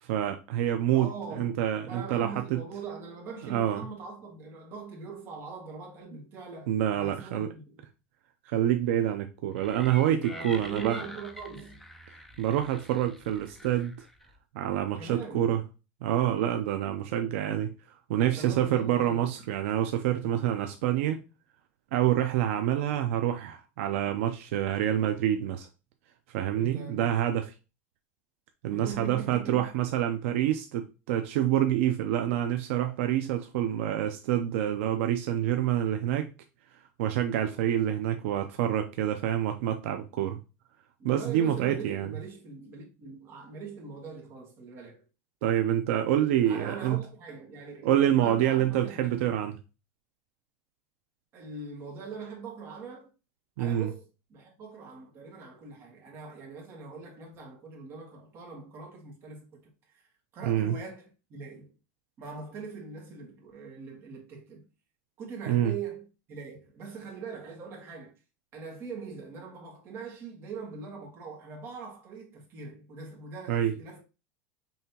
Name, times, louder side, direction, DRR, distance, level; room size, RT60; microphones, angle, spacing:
voice 1, 0.0-2.6 3.4-3.9 6.7-7.5 8.5-11.0 12.4-13.9 14.5-15.6 16.0-21.2 21.9-25.7 26.3-27.5 28.6-36.3 37.0-40.4 41.0-42.2 45.4-47.0 47.8-49.6 53.6-53.9 60.4-60.8 65.5-65.7 73.5-73.8, right 11 dB, 75° right, 0.6 m, -27 dB
voice 2, 0.9-1.6 1.9-7.8 10.2-11.8 15.0-15.5 18.1-19.3 26.5-27.3 28.7-29.7 41.0-45.0 46.5-49.3 51.3-53.1 53.6-54.0 54.3-59.6 59.9-60.0 60.3-61.7 62.2-64.6 65.2-68.2 68.5-74.0, right 4 dB, 35° right, 1.9 m, -42 dB
sound 1, 9.6-14.4, left 1 dB, 5° left, 0.5 m, -46 dB
5.5 x 3.3 x 2.9 m
supercardioid pair, 160°, 7 cm